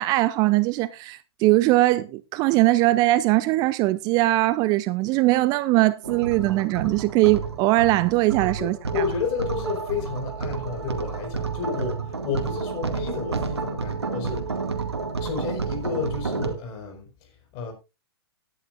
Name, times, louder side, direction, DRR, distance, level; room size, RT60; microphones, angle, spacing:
voice 1, 0.0-8.8, right 18 dB, 30° right, 0.5 m, -21 dB
sound 1, 6.0-16.5, right 5 dB, 80° right, 2.1 m, -30 dB
voice 2, 8.6-14.5 15.2-17.7, left 5 dB, 35° left, 4.9 m, -31 dB
18.0 x 10.0 x 2.5 m
figure-of-eight pair, 115°, 14 cm